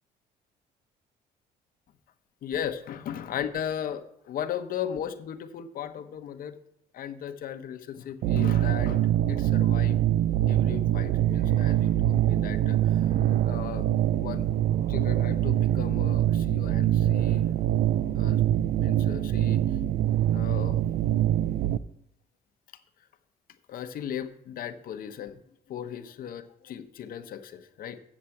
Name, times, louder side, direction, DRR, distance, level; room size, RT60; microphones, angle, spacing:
voice 1, 2.4-6.6 6.9-10.0 10.5-13.1 13.4-13.9 14.2-14.5 14.9-17.5 18.2-18.4 18.8-19.6 20.3-20.8 23.7-25.4 25.7-28.0, left 9 dB, 60° left, 8 dB, 1.0 m, -37 dB
sound 1, 8.2-21.8, right 12 dB, 60° right, 0.5 m, -24 dB
7.4 x 7.1 x 7.8 m, 0.75 s
cardioid pair, 110°, 17 cm